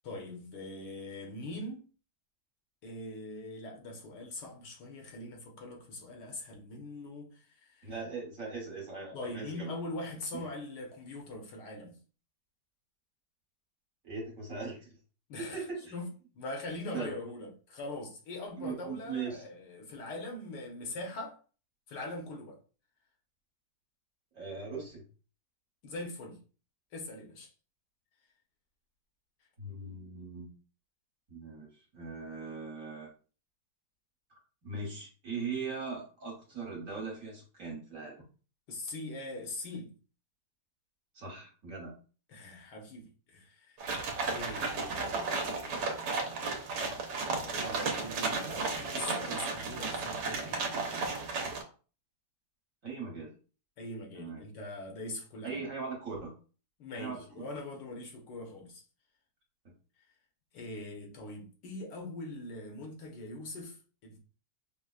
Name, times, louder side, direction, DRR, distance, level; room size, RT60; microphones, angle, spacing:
voice 1, 0.0-1.8 2.8-7.9 9.1-11.9 15.3-15.6 15.9-16.1 16.3-21.4 21.9-22.6 25.8-26.4 26.9-27.5 38.7-39.9 42.3-46.3 47.2-50.7 53.8-55.6 56.8-58.8 60.5-63.8 64.0-64.2, left 2 dB, 85° left, 1.6 m, -42 dB
voice 2, 7.8-9.7 10.3-10.4 14.0-15.0 15.5-15.9 16.9-17.2 18.6-19.4 24.3-25.0 29.6-30.5 31.3-33.1 34.6-38.2 41.1-42.0 52.8-53.3 54.1-54.4 55.4-56.3 56.9-57.4, right 4 dB, 55° right, 1.4 m, -40 dB
sound 1, 43.8-51.6, right 4 dB, 80° right, 1.3 m, -34 dB
5.3 x 2.1 x 2.3 m
omnidirectional pair, 1.8 m